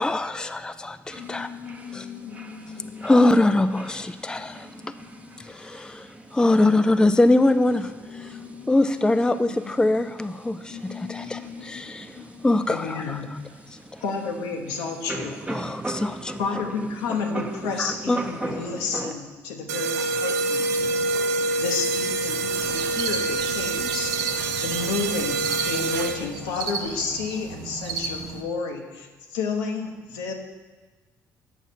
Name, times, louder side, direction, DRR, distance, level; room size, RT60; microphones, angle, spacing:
voice 1, 0.0-1.5 1.9-2.0 3.0-4.7 5.5-8.3 8.7-12.1 12.4-13.4 15.5-16.3 17.8-18.2, left 2 dB, 10° left, 11 dB, 0.4 m, -23 dB
voice 2, 1.1-3.4 4.0-5.7 8.0-9.1 9.5-9.9 10.7-12.7, left 8 dB, 60° left, 2 dB, 0.5 m, -42 dB
sound 1, 1.1-19.1, right 2 dB, 15° right, 0.8 m, -39 dB
voice 3, 12.7-13.3 14.0-15.4 16.4-20.7 21.6-24.1 24.6-30.3, left 4 dB, 80° left, 3 dB, 0.9 m, -31 dB
sound 2, 19.7-26.5, right 3 dB, 90° right, 0.4 m, -26 dB
sound 3, 22.5-28.4, right 4 dB, 70° right, 0.7 m, -34 dB
8.1 x 6.0 x 4.2 m, 1.3 s
hypercardioid pair, 50°, 8 cm